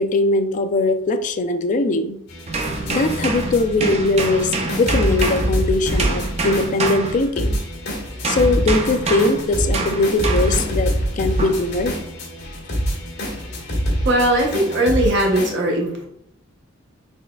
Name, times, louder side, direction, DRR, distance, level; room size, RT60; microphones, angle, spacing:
voice 1, 0.0-2.2 2.9-7.6 8.3-11.9, left 2 dB, 40° left, 8 dB, 0.3 m, -20 dB
sound 1, 2.3-15.5, equal, 55° left, 1.4 m, -25 dB
sound 2, 2.5-7.8 8.2-10.8 11.4-11.7, right 3 dB, 30° right, 0.5 m, -26 dB
voice 2, 14.0-16.1, right 1 dB, 60° right, 0 dB, 0.9 m, -19 dB
4.2 x 3.3 x 2.2 m, 0.73 s
head